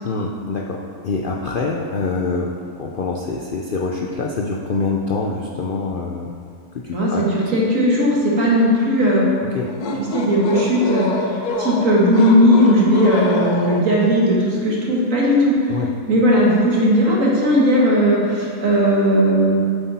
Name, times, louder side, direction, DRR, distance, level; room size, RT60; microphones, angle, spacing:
voice 1, 0.0-6.4 6.7-7.2 9.5-9.7 15.7-15.9, left 3 dB, 55° left, -1 dB, 0.6 m, -25 dB
voice 2, 6.9-9.3 10.0-11.1 11.6-15.6 16.1-19.6, equal, 60° right, -4 dB, 2.1 m, -16 dB
sound 1, 9.6-14.1, left 2 dB, 85° left, 1.3 m, -26 dB
8.5 x 8.0 x 4.2 m, 2.2 s
omnidirectional pair, 1.6 m